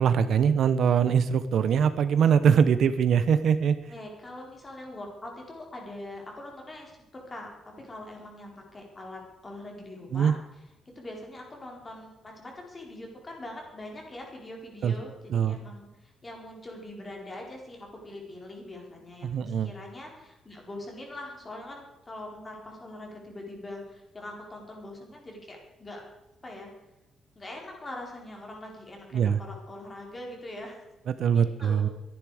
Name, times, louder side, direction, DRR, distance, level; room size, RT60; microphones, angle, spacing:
voice 1, 0.0-3.9 10.1-10.4 14.8-14.9 15.3-15.6 19.2-19.7 29.1-29.4 31.1-31.9, right 7 dB, 55° right, 12 dB, 0.7 m, -23 dB
voice 2, 3.9-7.5 7.8-10.4 10.9-26.0 26.4-26.7 27.4-30.8 31.3-31.9, left 1 dB, 20° left, 0 dB, 4.2 m, -42 dB
24.0 x 10.5 x 4.9 m, 0.97 s
cardioid pair, 160°, 0 cm